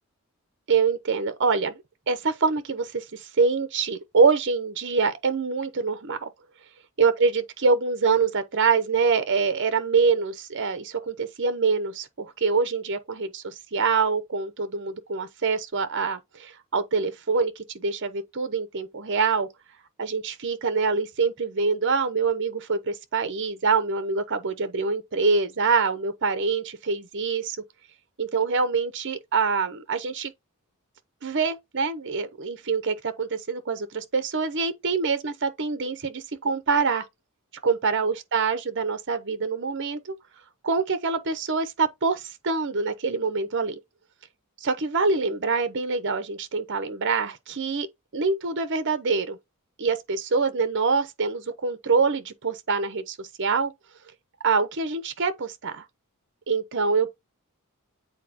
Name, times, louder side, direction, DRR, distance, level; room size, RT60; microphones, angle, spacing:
voice 1, 0.7-6.3 7.0-19.5 20.0-27.6 28.2-30.3 31.2-37.1 37.6-40.1 40.6-43.7 44.6-47.9 48.1-49.4 49.8-53.7 54.4-55.8 56.5-57.1, right 4 dB, 55° right, 0.8 m, -25 dB
8.2 x 4.2 x 2.8 m
head